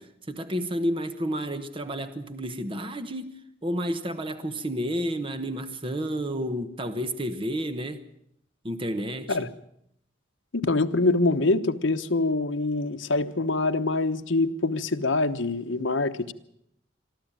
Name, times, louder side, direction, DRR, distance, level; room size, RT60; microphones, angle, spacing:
voice 1, 0.0-3.3 3.6-8.0 8.6-9.5, equal, 25° right, 1.1 m, -31 dB
voice 2, 10.5-16.3, left 2 dB, 70° left, 1.1 m, -25 dB
23.0 x 13.5 x 9.0 m
head